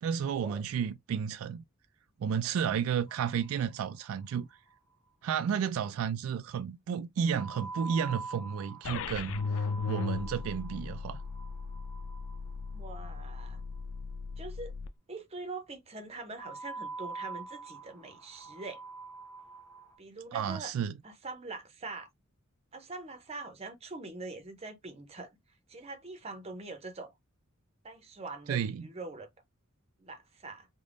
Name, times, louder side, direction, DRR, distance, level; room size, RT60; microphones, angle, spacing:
voice 1, 0.0-1.6 2.2-4.5 5.2-11.2 20.3-20.9 28.5-28.9, right 7 dB, 80° right, 0.3 m, -32 dB
sound 1, 3.1-4.1 4.3-4.4 4.7-4.8 7.3-13.4 16.4-20.0, right 4 dB, 10° left, 1.1 m, -45 dB
sound 2, 8.8-14.9, left 5 dB, 70° left, 0.3 m, -37 dB
voice 2, 12.7-13.6 14.4-14.7 15.1-18.8 20.0-20.7 21.0-22.1 22.7-25.4 25.7-27.1 27.8-29.3 30.0-30.7, right 3 dB, 30° right, 0.7 m, -43 dB
3.3 x 2.2 x 2.5 m
head